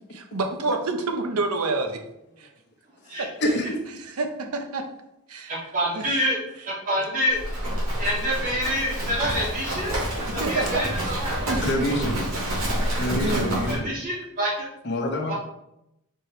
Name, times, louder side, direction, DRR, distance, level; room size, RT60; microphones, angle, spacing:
voice 1, 0.1-2.0 2.4-2.5 3.2-3.3 4.1-4.8 5.3-5.6 6.0-6.2 10.4-11.6 12.0-12.1 13.2-13.5, right 3 dB, 85° right, 5 dB, 0.9 m, -28 dB
voice 2, 3.4-3.8 11.6-12.2 13.0-13.8 14.8-15.3, left 1 dB, 50° left, 2 dB, 0.9 m, -26 dB
voice 3, 5.5-6.4 6.7-7.4 8.0-11.3 13.7-14.7 15.2-15.3, equal, 35° right, -5 dB, 2.2 m, -27 dB
Livestock farm animals working animals, 7.3-13.8, right 1 dB, 70° right, 2.4 m, -28 dB
4.8 x 4.4 x 4.5 m, 0.84 s
head